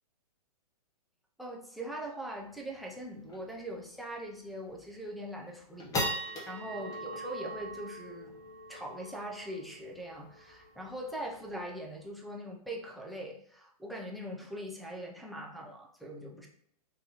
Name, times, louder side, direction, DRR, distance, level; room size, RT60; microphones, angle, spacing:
voice 1, 1.4-5.9 6.2-8.4 8.7-16.5, right 1 dB, ahead, -2 dB, 0.4 m, -41 dB
sound 1, 2.4-2.5 2.8-2.9 3.3-3.5 4.0-4.1 4.7-5.0 5.5-12.0, equal, 15° left, 0.8 m, -40 dB
3.8 x 2.6 x 2.9 m, 0.68 s
hypercardioid pair, 135°, 19 cm